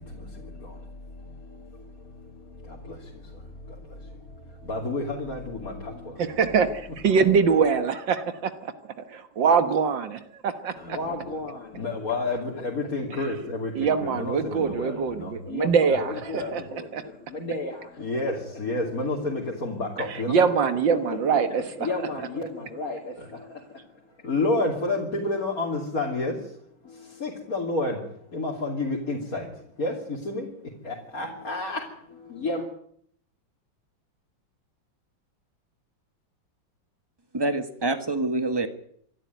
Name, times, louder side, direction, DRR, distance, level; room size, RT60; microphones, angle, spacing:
voice 1, 0.0-6.4 6.9-7.0 10.8-20.4 20.9-32.7, left 2 dB, 45° left, -2 dB, 3.3 m, -31 dB
voice 2, 6.2-8.7 9.0-11.0 13.8-16.6 16.9-17.0 20.3-22.1, right 6 dB, 70° right, 10 dB, 2.1 m, -24 dB
voice 3, 37.3-38.7, right 2 dB, 15° right, 10 dB, 1.5 m, -26 dB
25.5 x 12.5 x 9.3 m, 0.66 s
omnidirectional pair, 2.1 m